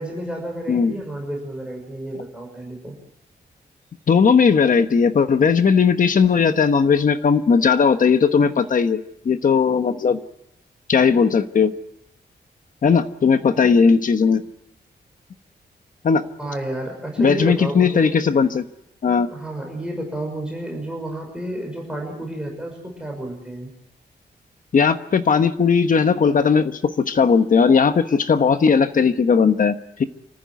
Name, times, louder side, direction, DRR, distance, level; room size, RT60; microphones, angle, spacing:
voice 1, 0.0-2.9 16.4-18.2 19.3-23.7, right 1 dB, 5° right, 0 dB, 5.8 m, -31 dB
voice 2, 4.1-10.2 10.9-11.7 12.8-14.4 16.0-16.2 17.2-18.7 19.0-19.3 24.7-30.0, left 5 dB, 50° left, 9 dB, 1.2 m, -17 dB
27.0 x 14.5 x 9.5 m, 0.83 s
wide cardioid pair, 165°, 18 cm